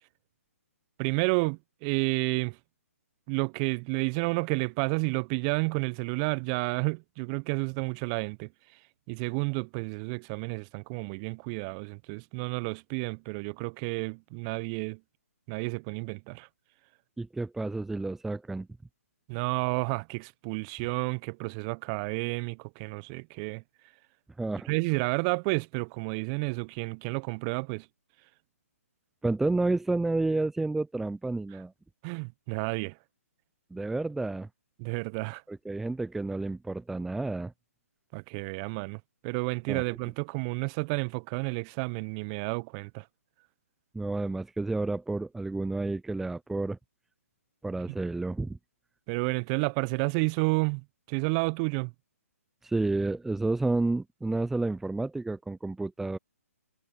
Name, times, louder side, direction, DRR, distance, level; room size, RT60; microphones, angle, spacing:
voice 1, 1.0-2.6 3.3-8.5 9.1-15.0 15.5-16.5 19.3-23.6 24.7-27.9 32.0-33.0 34.8-35.4 38.1-43.1 49.1-51.9, right 34 dB, 25° right, 1.0 m, -31 dB
voice 2, 17.2-18.7 24.4-24.7 29.2-31.7 33.7-34.5 35.5-37.5 39.7-39.8 43.9-46.8 47.6-48.6 52.6-56.2, right 2 dB, 5° right, 0.6 m, -30 dB
figure-of-eight pair, 135°, 8 cm